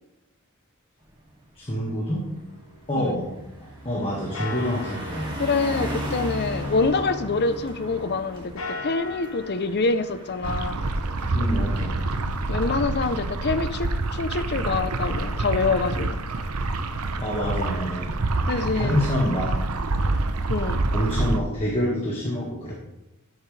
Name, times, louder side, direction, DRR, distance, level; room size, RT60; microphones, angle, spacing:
Car passing by, 1.1-1.3 1.7-12.7, equal, 20° right, 2.4 m, -36 dB
voice 1, 1.6-2.2 2.9-3.3 3.6-5.4 11.3-11.9 17.2-18.2 18.6-19.6 20.9-22.7, equal, 25° left, -4 dB, 1.7 m, -26 dB
sound 1, 2.2-4.0 4.3-7.9 8.4-9.6, left 3 dB, 65° left, 1.2 m, -40 dB
voice 2, 5.4-10.8 12.5-16.2 18.5-19.0 20.5-20.8, left 4 dB, 45° left, 11 dB, 0.6 m, -26 dB
sound 2, 10.4-21.4, right 2 dB, 80° right, 0.8 m, -27 dB
13.0 x 7.4 x 3.3 m, 0.96 s
head